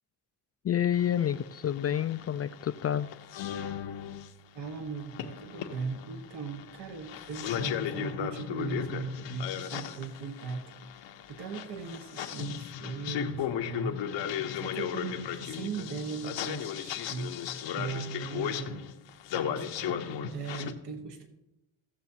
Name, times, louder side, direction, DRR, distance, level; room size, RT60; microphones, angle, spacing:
voice 1, 0.6-3.1, left 10 dB, 35° left, 12 dB, 0.4 m, -29 dB
sound 1, 0.9-4.3 4.6-20.7, left 9 dB, 75° left, 0.9 m, -36 dB
voice 2, 4.5-10.6 10.9-11.0 11.3-17.3 17.7-18.9 19.5-21.3, right 5 dB, 65° right, 4 dB, 1.6 m, -39 dB
16.0 x 7.0 x 2.9 m, 0.92 s
supercardioid pair, 60°, 44 cm